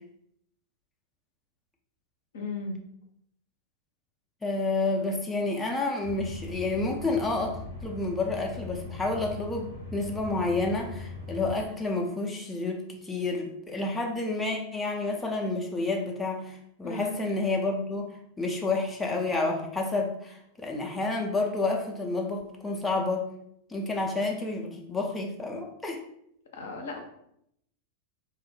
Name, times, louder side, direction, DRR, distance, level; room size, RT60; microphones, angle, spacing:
voice 1, 2.3-2.7 16.8-17.3 26.5-27.0, left 2 dB, 60° left, 2 dB, 0.5 m, -35 dB
voice 2, 4.4-23.3 23.7-26.0, left 3 dB, 10° left, 0 dB, 0.4 m, -30 dB
sound 1, 6.0-11.6, left 3 dB, 80° right, 0.7 m, -40 dB
2.4 x 2.0 x 3.1 m, 0.73 s
figure-of-eight pair, 90°, 0 cm